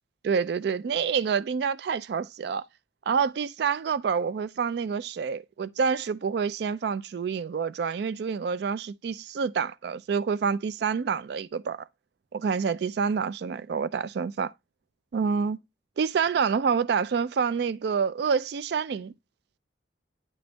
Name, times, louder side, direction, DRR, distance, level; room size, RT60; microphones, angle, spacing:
voice 1, 0.2-2.6 3.1-11.8 12.3-14.5 15.1-15.6 16.0-19.1, right 6 dB, 60° right, 0.3 m, -27 dB
9.5 x 3.5 x 3.9 m
head